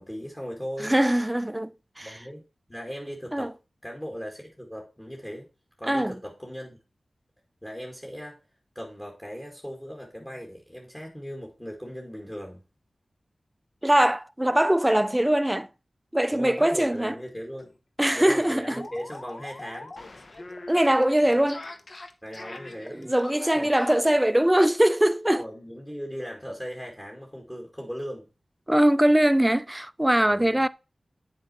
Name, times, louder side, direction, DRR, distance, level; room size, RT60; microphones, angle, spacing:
voice 1, 0.0-0.9 2.0-2.4 2.7-3.5 3.8-5.5 5.8-6.8 7.6-8.4 8.8-12.6 16.3-17.7 18.1-19.9 22.2-23.1 23.5-23.7 25.4-28.3 30.3-30.7, equal, 15° left, 1.8 m, -38 dB
voice 2, 0.8-2.1 3.3-3.5 5.9-6.1 13.8-15.7 16.1-17.1 18.0-18.9 20.7-21.6 22.9-25.4 28.7-30.7, right 1 dB, 15° right, 0.4 m, -22 dB
sound 1, 17.2-17.3 17.6-17.7 18.0-24.2, left 2 dB, 55° left, 0.8 m, -43 dB
7.5 x 4.4 x 4.1 m
cardioid pair, 40°, 0 cm